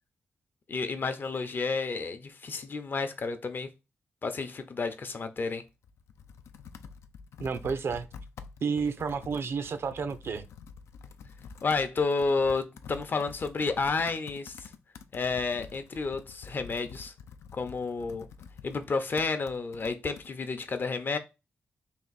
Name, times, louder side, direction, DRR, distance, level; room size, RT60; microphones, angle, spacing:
voice 1, 0.7-3.7 4.2-5.6 11.6-14.7 15.1-17.1 17.5-18.3 18.6-21.2, left 4 dB, 50° left, 0.6 m, -31 dB
Computer keyboard, 5.7-20.3, left 6 dB, 90° left, 0.4 m, -48 dB
voice 2, 7.4-8.1 8.6-10.4, right 5 dB, 65° right, 0.5 m, -31 dB
3.5 x 2.5 x 4.0 m
cardioid pair, 75°, 5 cm